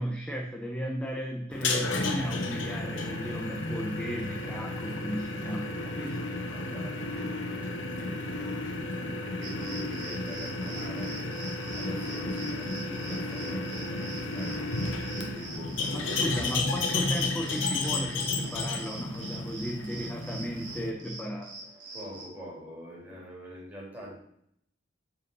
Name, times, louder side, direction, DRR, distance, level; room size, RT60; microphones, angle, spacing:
voice 1, 0.0-6.1 15.9-21.5, equal, 5° left, 0 dB, 0.7 m, -35 dB
sound 1, 1.5-20.9, left 2 dB, 90° left, 1.1 m, -33 dB
voice 2, 2.7-3.1 5.3-6.0 6.4-11.4 11.7-16.1 21.9-24.2, equal, 10° right, -5 dB, 2.7 m, -44 dB
sound 2, 9.4-22.3, right 2 dB, 70° right, 2.5 m, -44 dB
5.4 x 5.0 x 6.0 m, 0.70 s
head